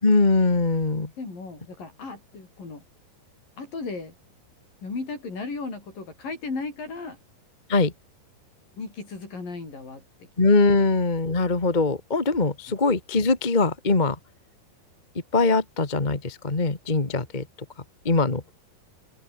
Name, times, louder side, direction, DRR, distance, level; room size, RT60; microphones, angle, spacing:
voice 1, 0.0-1.1 7.7-7.9 10.4-14.2 15.3-17.4 18.0-18.4, left 3 dB, 20° left, 1.4 m, -22 dB
voice 2, 1.2-2.8 3.6-4.1 4.8-7.2 8.8-10.3 12.7-12.8, left 4 dB, 65° left, 9.4 m, -35 dB
open air
omnidirectional pair, 4.3 m